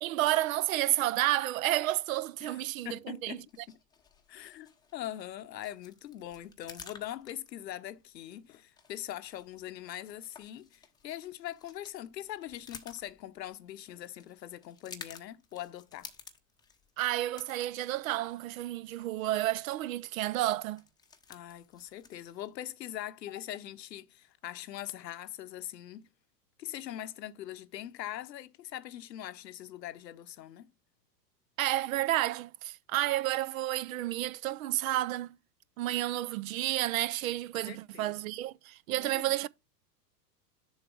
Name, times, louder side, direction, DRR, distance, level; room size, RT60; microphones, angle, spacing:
voice 1, 0.0-3.4 17.0-20.8 31.6-35.4 35.8-39.5, right 15 dB, 55° right, 0.5 m, -31 dB
voice 2, 2.4-3.8 4.3-16.1 21.3-26.1 26.6-30.7 37.6-38.1 39.0-39.3, left 12 dB, 80° left, 0.8 m, -42 dB
sound 1, 3.3-22.5, left 5 dB, 10° left, 0.7 m, -54 dB
7.2 x 4.6 x 4.8 m
hypercardioid pair, 115°, 49 cm